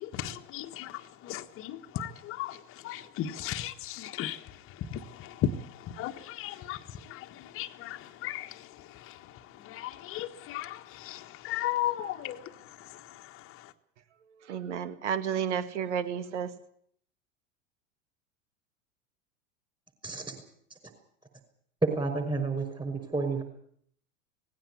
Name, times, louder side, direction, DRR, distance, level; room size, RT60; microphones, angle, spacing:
voice 1, 0.0-0.9 1.2-2.6 2.8-4.4 4.9-5.5 6.0-6.8 7.1-7.2 7.5-8.5 9.7-12.4, left 12 dB, 35° left, 6 dB, 1.5 m, -35 dB
voice 2, 14.5-16.5, right 8 dB, 60° right, 12 dB, 2.0 m, -31 dB
voice 3, 20.0-20.4 21.8-23.4, right 3 dB, 10° right, 6 dB, 5.7 m, -30 dB
18.5 x 16.5 x 9.8 m, 0.66 s
figure-of-eight pair, 90°, 39 cm